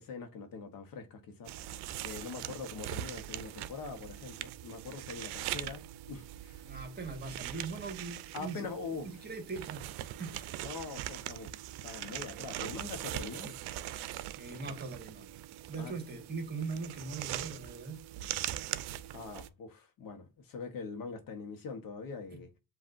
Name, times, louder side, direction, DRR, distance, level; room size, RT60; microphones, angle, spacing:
voice 1, 0.0-1.5 2.0-5.8 6.1-6.7 8.3-9.1 10.6-13.5 14.5-14.6 15.8-16.0 19.1-22.5, left 4 dB, 60° left, 1.1 m, -43 dB
sound 1, 1.5-19.5, right 14 dB, 85° right, 0.5 m, -41 dB
voice 2, 6.6-8.6 9.0-10.6 13.4-13.6 14.4-15.3 15.7-18.0 22.3-22.4, right 4 dB, 25° right, 1.7 m, -41 dB
7.5 x 2.6 x 2.5 m
cardioid pair, 120°, 38 cm